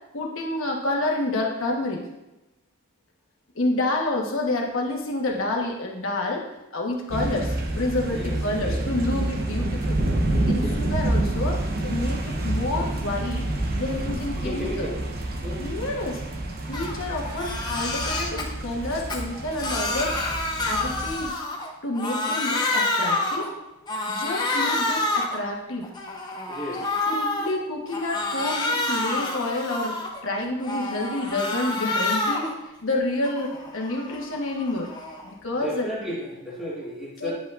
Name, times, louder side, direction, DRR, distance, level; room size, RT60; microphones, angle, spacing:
voice 1, 0.1-2.0 3.5-6.4 6.7-10.0 10.5-13.5 13.7-14.9 15.6-16.2 16.6-20.2 20.6-21.4 21.8-23.5 24.1-25.9 27.1-32.5 32.8-34.9 35.2-35.8 37.2-37.3, left 2 dB, 60° left, -1 dB, 1.3 m, -28 dB
sound 1, 7.1-21.3, right 1 dB, 45° right, 0.8 m, -28 dB
voice 2, 8.1-8.8 10.5-10.8 14.4-15.0 15.4-15.7 26.5-26.9 35.6-37.3, equal, ahead, -8 dB, 1.7 m, -34 dB
Crying sobbing, 16.7-16.9 17.3-18.4 18.9-21.7 21.9-23.5 23.9-25.4 25.8-27.5 27.9-30.2 30.6-32.5 32.9-35.3, left 2 dB, 20° left, 0.8 m, -28 dB
10.0 x 5.4 x 2.5 m, 1.0 s
head